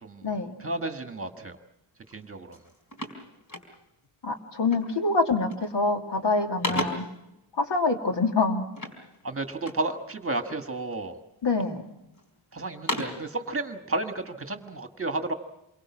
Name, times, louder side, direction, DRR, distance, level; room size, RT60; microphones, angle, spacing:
voice 1, 0.6-1.6 2.1-2.6 6.7-6.9 9.2-11.2 12.5-15.3, right 2 dB, 25° right, 6 dB, 1.6 m, -32 dB
sound 1, 2.1-2.2 2.5-4.1 4.7-5.0 5.4-5.9 6.2-7.2 8.7-9.9 10.4-11.1 11.6-12.3 12.6-13.3, left 1 dB, 40° left, 4.2 m, -36 dB
voice 2, 4.2-7.0 7.6-8.6 11.4-11.8, left 3 dB, 60° left, 3 dB, 2.8 m, -25 dB
28.0 x 23.0 x 6.0 m, 0.90 s
wide cardioid pair, 165°, 48 cm